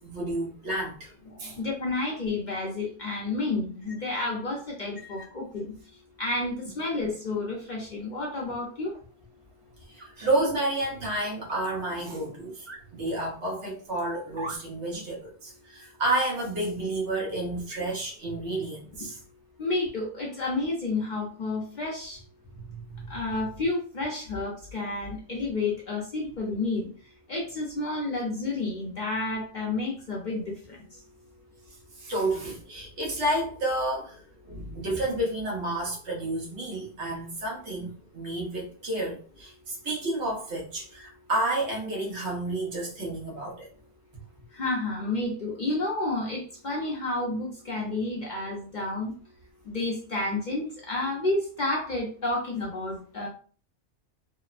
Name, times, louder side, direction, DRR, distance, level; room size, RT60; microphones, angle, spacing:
voice 1, 0.0-1.1 1.4-1.6 5.0-5.2 9.9-19.2 22.5-23.1 32.0-34.2 34.4-43.7, right 1 dB, 65° right, -2 dB, 1.2 m, -30 dB
voice 2, 1.3-5.7 6.2-8.9 19.6-22.2 23.1-26.9 27.3-30.8 44.5-49.1 49.7-53.3, left 2 dB, 50° left, -2 dB, 0.6 m, -30 dB
sound 1, 8.9-9.0 10.0-10.1 11.5-11.8 12.7-12.8 13.3-13.4 14.3-14.6, right 2 dB, 45° right, 0.4 m, -38 dB
2.8 x 2.0 x 2.4 m, 0.39 s
omnidirectional pair, 1.2 m